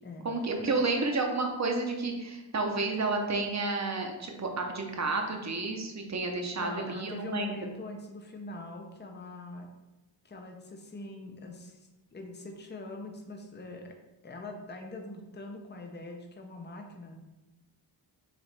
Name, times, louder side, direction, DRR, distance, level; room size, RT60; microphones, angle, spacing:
voice 1, 0.2-7.5, right 3 dB, 35° right, 3 dB, 0.8 m, -31 dB
voice 2, 6.6-9.7 10.2-14.0 14.2-17.2, left 2 dB, 25° left, 3 dB, 0.6 m, -43 dB
5.0 x 3.1 x 3.2 m, 1.0 s
wide cardioid pair, 60°, 46 cm